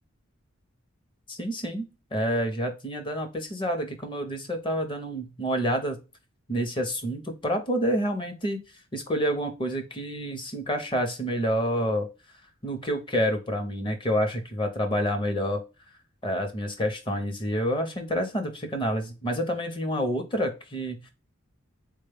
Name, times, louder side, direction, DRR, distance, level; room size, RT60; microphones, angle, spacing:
voice 1, 1.3-1.8 2.1-6.0 6.5-8.6 8.9-12.1 12.6-15.6 16.2-21.1, equal, 20° left, 6 dB, 0.6 m, -28 dB
4.0 x 2.2 x 3.4 m, 0.30 s
head